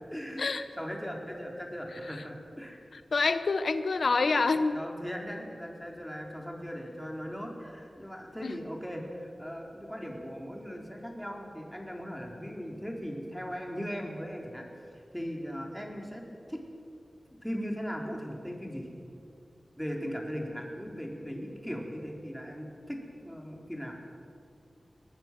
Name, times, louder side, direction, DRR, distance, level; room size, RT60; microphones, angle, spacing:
voice 1, 0.1-2.8 4.4-14.7 14.9-16.6 17.4-18.9 19.8-24.0, equal, 5° left, 0 dB, 4.4 m, -39 dB
voice 2, 2.9-4.8 8.4-8.6, left 4 dB, 80° left, 11 dB, 0.8 m, -27 dB
22.0 x 19.0 x 7.7 m, 2.5 s
wide cardioid pair, 65°, 0 cm